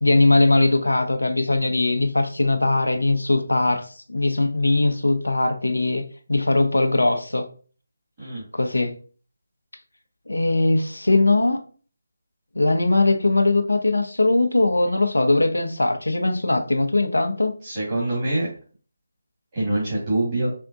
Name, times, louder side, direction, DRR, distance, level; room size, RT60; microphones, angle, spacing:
voice 1, 0.0-6.0 6.3-7.5 8.5-8.9 10.3-11.6 12.5-17.6, left 2 dB, 80° left, 0.9 m, -20 dB
voice 2, 17.6-18.5 19.5-20.5, right 2 dB, 30° right, 2.3 m, -24 dB
5.4 x 3.4 x 2.6 m
figure-of-eight pair, 155°, 0 cm